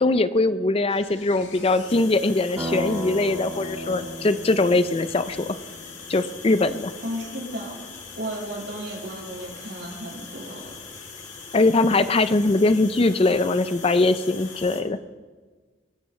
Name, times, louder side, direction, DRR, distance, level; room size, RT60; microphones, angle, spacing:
voice 1, 0.0-5.6 6.1-6.9 11.5-15.0, left 2 dB, 30° left, 12 dB, 0.5 m, -21 dB
sound 1, 0.9-14.8, left 5 dB, 80° left, 2.5 m, -41 dB
sound 2, 2.6-6.4, equal, 20° right, 2.4 m, -35 dB
voice 2, 7.0-7.7 8.2-10.8, equal, 70° right, -2 dB, 5.0 m, -34 dB
22.5 x 17.5 x 3.2 m, 1.4 s
head